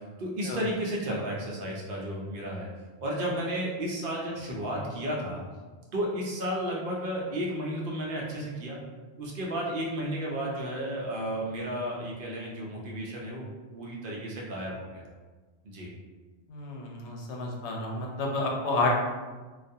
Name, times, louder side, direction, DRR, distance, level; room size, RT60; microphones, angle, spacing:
voice 1, 0.2-2.7 3.0-5.4 5.9-8.8 9.2-13.4 13.7-15.1 15.6-15.9, right 1 dB, 60° right, -3 dB, 0.7 m, -33 dB
voice 2, 16.5-18.9, left 2 dB, 90° left, -1 dB, 0.9 m, -30 dB
2.3 x 2.2 x 2.6 m, 1.3 s
omnidirectional pair, 1.1 m